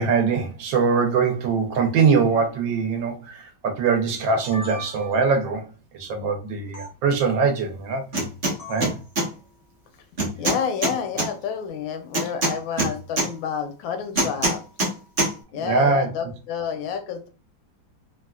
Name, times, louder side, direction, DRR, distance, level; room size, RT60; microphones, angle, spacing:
voice 1, 0.0-5.7 5.9-8.0 8.7-8.9 15.6-16.1, right 5 dB, 80° right, 1.4 m, -22 dB
sound 1, 4.1-5.3 6.7-6.9 8.6-9.0, right 1 dB, 60° left, 0.4 m, -39 dB
sound 2, 8.1-8.5 8.8-9.3 10.2-11.3 12.1-13.3 14.2-14.9 15.2-15.3, right 2 dB, 40° right, 0.8 m, -23 dB
voice 2, 10.3-14.6 15.5-17.3, left 7 dB, 85° left, 1.4 m, -29 dB
3.6 x 2.3 x 2.3 m
omnidirectional pair, 2.1 m